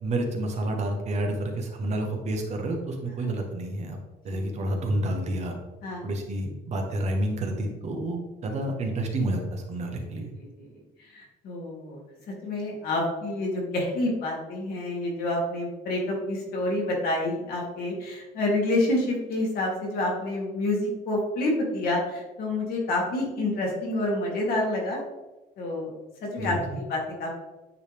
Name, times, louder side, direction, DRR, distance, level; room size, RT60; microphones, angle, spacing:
voice 1, 0.0-4.0 4.2-5.5 6.0-10.3 26.4-26.8, right 1 dB, 40° right, 2 dB, 1.1 m, -29 dB
voice 2, 10.1-12.0 12.3-25.0 25.6-25.9 26.3-27.3, left 1 dB, 65° left, -2 dB, 2.1 m, -28 dB
9.3 x 3.3 x 3.4 m, 1.1 s
cardioid pair, 160°, 17 cm